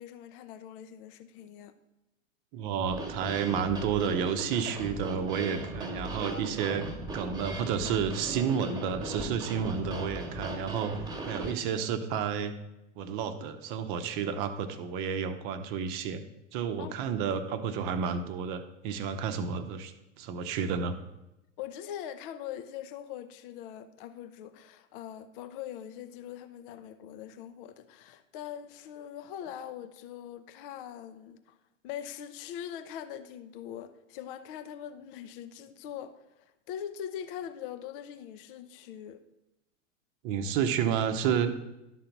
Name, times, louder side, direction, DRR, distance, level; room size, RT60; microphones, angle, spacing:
voice 1, 0.0-1.8 16.8-16.9 21.6-31.6 31.8-39.2, left 10 dB, 45° left, 0.6 m, -42 dB
voice 2, 2.5-6.9 7.1-12.5 13.0-16.2 16.5-21.0 40.2-41.8, right 7 dB, 40° right, 0.8 m, -31 dB
sound 1, 2.9-11.5, right 2 dB, 10° right, 1.4 m, -38 dB
11.5 x 3.9 x 5.8 m
hypercardioid pair, 100°, 39 cm